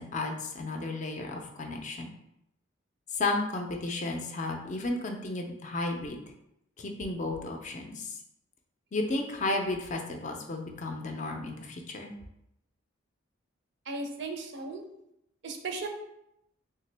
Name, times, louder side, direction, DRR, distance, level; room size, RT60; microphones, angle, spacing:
voice 1, 0.0-2.1 3.1-6.2 6.8-8.2 8.9-12.2, left 2 dB, 40° left, 3 dB, 0.4 m, -33 dB
voice 2, 13.9-14.8 15.4-15.9, right 3 dB, 60° right, 4 dB, 0.5 m, -36 dB
3.3 x 2.8 x 3.3 m, 0.81 s
head